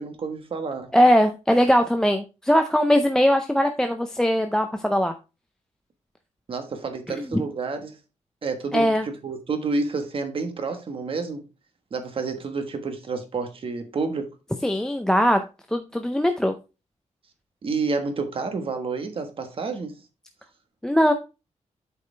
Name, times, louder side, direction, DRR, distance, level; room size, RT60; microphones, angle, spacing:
voice 1, 0.0-0.9 6.5-8.0 8.4-11.4 11.9-14.3 17.6-20.0, right 4 dB, 45° right, 1.3 m, -29 dB
voice 2, 0.9-5.1 7.2-7.4 8.7-9.0 14.6-15.4 15.7-16.5 20.8-21.1, equal, 5° left, 0.5 m, -20 dB
8.3 x 4.8 x 3.3 m
wide cardioid pair, 160°, 13 cm